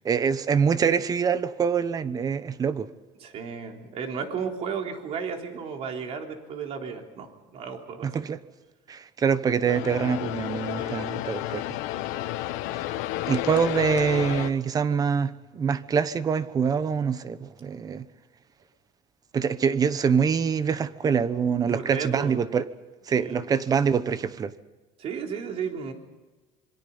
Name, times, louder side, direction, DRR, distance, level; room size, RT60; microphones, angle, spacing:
voice 1, 0.0-2.9 8.0-8.4 8.9-11.6 13.3-18.0 19.3-22.6 23.1-24.5, right 6 dB, 25° right, 1.0 m, -25 dB
voice 2, 3.2-8.3 10.8-11.1 21.6-22.4 23.1-23.5 25.0-25.9, right 6 dB, 45° right, 3.7 m, -34 dB
sound 1, 9.6-14.5, left 15 dB, 75° left, 1.4 m, -31 dB
26.5 x 23.5 x 5.6 m
cardioid pair, 140°, 14 cm